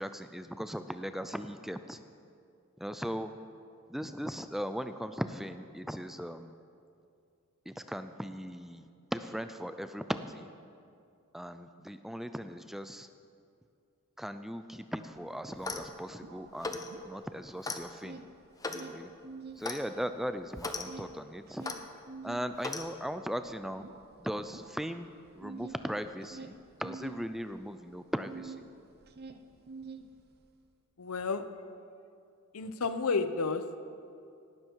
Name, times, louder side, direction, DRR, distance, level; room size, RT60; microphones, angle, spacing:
voice 1, 0.0-2.0 2.8-3.3 3.9-6.5 7.7-8.8 9.1-10.5 11.3-13.1 14.2-18.2 18.7-19.1 19.6-21.7 22.2-23.9 24.2-25.1 25.4-26.5 26.8-28.6, equal, ahead, 10 dB, 0.4 m, -38 dB
sound 1, 15.2-15.3 15.5-17.5 17.8-19.7 20.0-28.7 29.0-30.5, right 4 dB, 45° right, 0.7 m, -47 dB
Clock, 15.5-15.9 16.6-16.9 17.6-17.8 18.6-18.9 19.6-19.8 20.6-20.8 21.6-21.8 22.6-22.9, left 3 dB, 15° left, 0.7 m, -37 dB
voice 2, 31.0-31.4 32.5-33.8, left 4 dB, 80° left, 10 dB, 0.8 m, -31 dB
18.0 x 12.0 x 4.6 m, 2.5 s
head